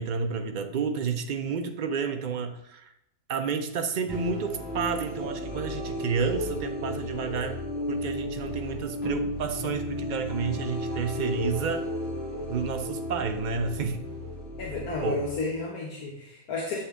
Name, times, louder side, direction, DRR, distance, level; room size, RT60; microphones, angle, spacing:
voice 1, 0.0-2.9 3.3-7.6 7.9-11.8 12.5-14.0 15.0-15.2, right 5 dB, 60° right, 6 dB, 0.4 m, -30 dB
sound 1, 4.1-15.4, left 1 dB, 15° right, 2.0 m, -34 dB
voice 2, 14.6-16.8, left 3 dB, 75° left, -2 dB, 1.6 m, -32 dB
7.9 x 5.6 x 3.3 m, 0.81 s
omnidirectional pair, 1.6 m